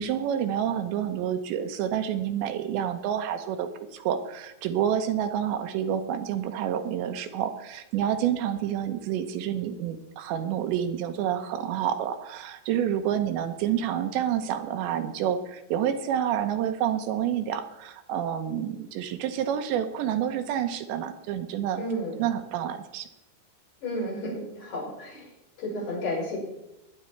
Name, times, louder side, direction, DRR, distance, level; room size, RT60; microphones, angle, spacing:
voice 1, 0.0-21.8 22.2-23.1, right 9 dB, 80° right, 8 dB, 3.0 m, -28 dB
voice 2, 21.8-22.2 23.8-25.3 25.6-26.4, left 1 dB, 60° left, -6 dB, 7.8 m, -32 dB
21.5 x 9.6 x 4.5 m, 0.90 s
omnidirectional pair, 5.3 m